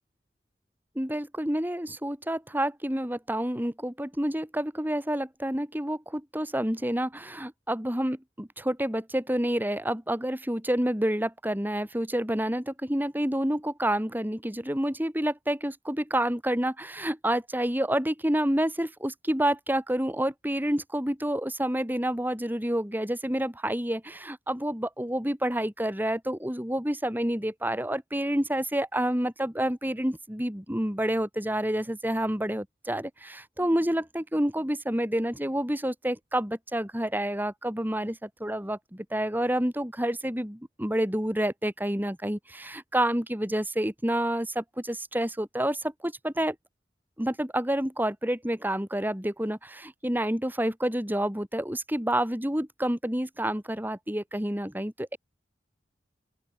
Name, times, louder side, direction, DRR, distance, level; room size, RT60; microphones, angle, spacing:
voice 1, 1.0-46.6 47.2-55.2, right 1 dB, 10° right, 4.2 m, -29 dB
open air
head